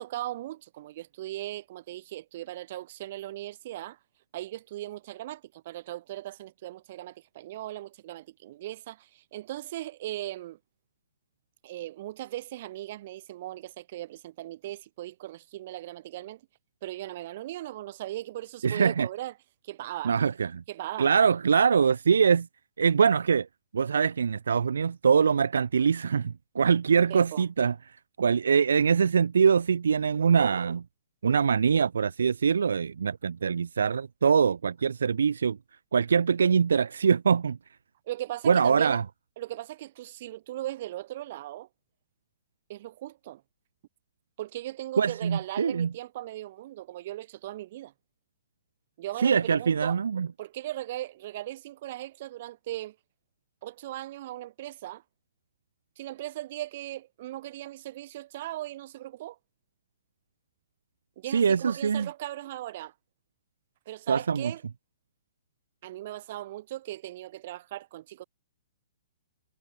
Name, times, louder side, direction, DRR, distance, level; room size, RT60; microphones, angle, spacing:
voice 1, 0.0-4.0 4.3-10.6 11.6-16.4 16.8-19.3 19.6-20.2 20.7-21.1 27.1-27.5 38.1-39.0 39.4-41.7 42.7-43.4 44.4-47.9 49.0-50.0 50.4-53.0 53.6-55.0 56.0-59.4 61.2-62.9 63.9-64.6 65.8-68.2, right 14 dB, 45° right, 3.6 m, -38 dB
voice 2, 18.6-19.1 20.0-20.6 21.0-22.5 22.8-23.5 23.7-27.7 28.2-30.8 31.2-35.6 35.9-37.6 38.5-39.0 45.0-45.9 49.2-50.3 61.3-62.1 64.1-64.5, right 6 dB, 85° right, 0.8 m, -23 dB
hypercardioid pair, 150°, 0 cm